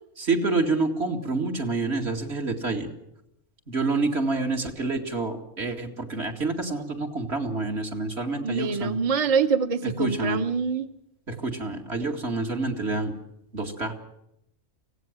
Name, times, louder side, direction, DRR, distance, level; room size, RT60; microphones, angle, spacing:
voice 1, 0.2-2.9 3.7-9.0 9.8-10.4 11.3-13.1 13.5-13.9, right 3 dB, 60° right, 3 dB, 2.7 m, -28 dB
voice 2, 8.4-10.9, right 5 dB, 30° right, 8 dB, 0.9 m, -25 dB
24.5 x 17.0 x 7.6 m, 0.81 s
omnidirectional pair, 1.3 m